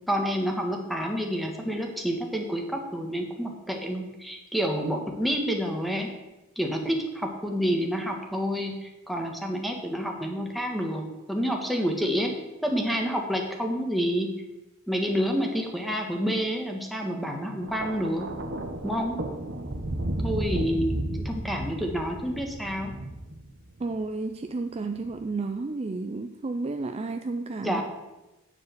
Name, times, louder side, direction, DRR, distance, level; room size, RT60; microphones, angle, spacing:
voice 1, 0.1-6.1 6.6-12.3 12.6-14.3 14.9-18.3 18.8-19.2 20.2-21.0 21.2-22.9 27.6-27.8, equal, ahead, 1 dB, 1.4 m, -28 dB
Thunder, 17.6-24.0 25.0-25.2, right 1 dB, 55° right, 1.2 m, -33 dB
voice 2, 23.8-27.8, right 3 dB, 30° right, 6 dB, 0.4 m, -32 dB
9.6 x 4.8 x 7.9 m, 1.0 s
head